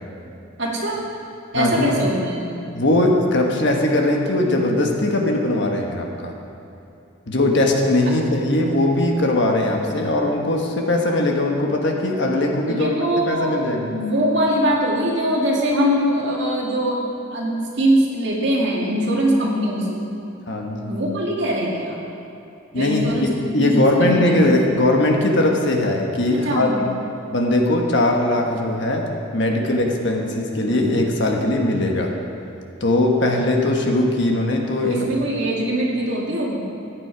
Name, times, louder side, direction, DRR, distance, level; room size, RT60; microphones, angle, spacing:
voice 1, 0.6-1.0 1.5-2.4 12.7-17.0 17.3-20.0 20.9-22.0 22.7-24.6 26.3-26.9 34.8-36.6, right 1 dB, 60° right, -3 dB, 2.3 m, -22 dB
voice 2, 1.5-1.9 2.7-6.3 7.3-12.9 13.3-13.9 20.5-20.9 22.7-23.0 23.4-26.8 27.3-29.1 29.3-32.1 32.8-35.1, left 1 dB, 60° left, 1 dB, 1.4 m, -20 dB
14.5 x 9.7 x 4.8 m, 2.8 s
head